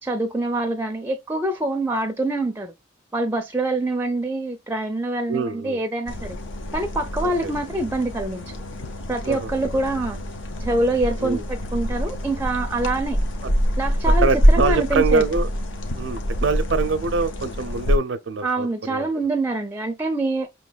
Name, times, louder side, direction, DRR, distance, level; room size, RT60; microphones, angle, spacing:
voice 1, 0.0-2.7 3.1-6.4 6.7-8.6 9.1-10.2 10.6-13.2 13.8-15.2 18.4-20.5, right 2 dB, 10° right, 0.4 m, -25 dB
voice 2, 5.3-5.8 7.4-7.5 9.2-9.5 11.2-11.4 14.2-15.5 15.9-19.1, right 4 dB, 75° right, 0.5 m, -24 dB
sound 1, 6.1-18.0, equal, 85° left, 0.8 m, -25 dB
5.8 x 3.0 x 2.3 m
head